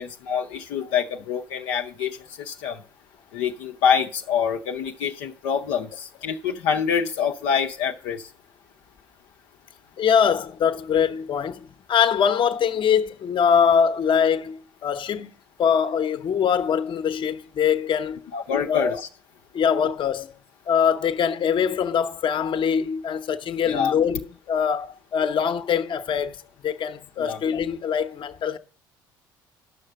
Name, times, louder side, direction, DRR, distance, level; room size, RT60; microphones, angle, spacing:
voice 1, 0.0-2.8 3.3-8.3 18.3-19.0 23.7-23.9 27.2-27.4, left 7 dB, 70° left, 0.8 m, -26 dB
voice 2, 10.0-15.3 15.6-18.3 18.7-19.0 19.5-20.3 20.7-28.6, left 7 dB, 45° left, 1.0 m, -23 dB
11.0 x 6.6 x 6.7 m
hypercardioid pair, 60°, 12 cm